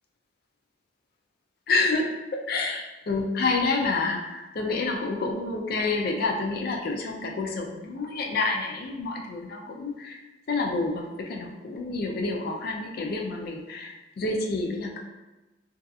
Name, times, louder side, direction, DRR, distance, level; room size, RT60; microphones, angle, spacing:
voice 1, 1.7-10.2 10.5-15.0, left 3 dB, 50° left, 1 dB, 0.3 m, -28 dB
2.7 x 2.4 x 2.3 m, 1.1 s
head